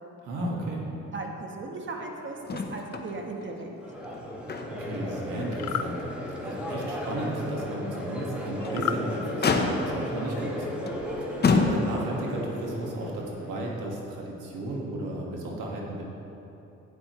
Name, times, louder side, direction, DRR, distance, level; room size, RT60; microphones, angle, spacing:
voice 1, 0.2-0.8 4.6-6.0 6.4-10.7 11.2-16.0, right 1 dB, 90° right, -2 dB, 1.7 m, -34 dB
voice 2, 1.1-3.7, right 3 dB, 40° right, 2 dB, 1.3 m, -37 dB
Motor vehicle (road), 2.5-3.1 3.4-3.5 4.0-5.0 5.4-5.5 6.1-6.2 8.4-8.9 9.4-10.1 10.9-11.0 11.4-12.2 13.3-13.4, left 4 dB, 35° left, 0.8 m, -27 dB
Crowd, 3.8-14.0, equal, 5° right, 1.7 m, -35 dB
sound 1, 5.5-5.9 8.7-9.0, left 10 dB, 65° left, 0.5 m, -31 dB
12.0 x 8.8 x 3.1 m, 3.0 s
cardioid pair, 90°, 30 cm